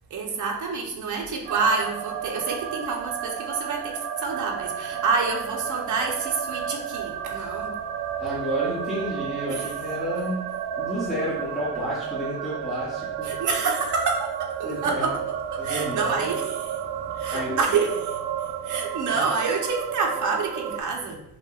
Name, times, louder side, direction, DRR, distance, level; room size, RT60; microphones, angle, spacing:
voice 1, 0.1-7.8 9.5-9.7 13.2-21.2, right 4 dB, 45° right, 1 dB, 0.8 m, -28 dB
sound 1, 1.5-20.8, right 9 dB, 65° right, 0.5 m, -32 dB
voice 2, 8.2-10.4 10.8-13.3 14.6-15.1 15.6-16.3 17.3-17.6 19.1-19.2, equal, ahead, -8 dB, 0.7 m, -30 dB
6.1 x 2.9 x 2.3 m, 0.81 s
cardioid pair, 165°, 43 cm